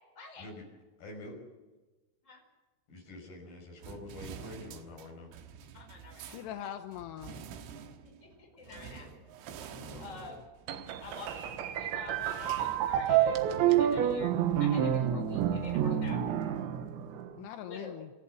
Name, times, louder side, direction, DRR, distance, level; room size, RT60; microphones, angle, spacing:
voice 1, 1.0-1.3 2.9-5.3 8.7-9.1 9.8-10.3, left 1 dB, 45° left, 1 dB, 7.2 m, -47 dB
sound 1, 3.8-13.6, right 8 dB, 85° right, 4.1 m, -49 dB
voice 2, 5.7-6.4 8.0-9.1 10.0-10.4 11.0-14.3 14.6-16.2 17.6-18.0, left 3 dB, 15° left, 1 dB, 4.8 m, -47 dB
voice 3, 6.2-7.4 9.7-10.3 17.3-18.1, left 11 dB, 75° left, 7 dB, 2.5 m, -43 dB
sound 2, 10.7-17.4, right 10 dB, 70° right, 3.3 m, -29 dB
28.0 x 15.0 x 7.8 m, 1.2 s
omnidirectional pair, 5.9 m